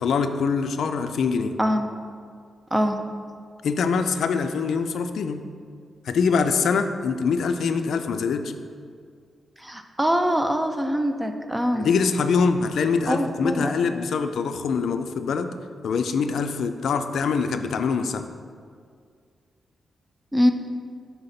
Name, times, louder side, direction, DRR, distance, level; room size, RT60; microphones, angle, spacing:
voice 1, 0.0-1.5 3.6-5.4 6.0-8.5 11.7-15.5 15.8-18.3, left 5 dB, 75° left, 8 dB, 0.3 m, -24 dB
voice 2, 9.6-11.9 13.1-13.7 20.3-20.5, equal, 10° right, 6 dB, 0.4 m, -23 dB
5.8 x 3.9 x 5.6 m, 2.1 s
wide cardioid pair, 140°, 0 cm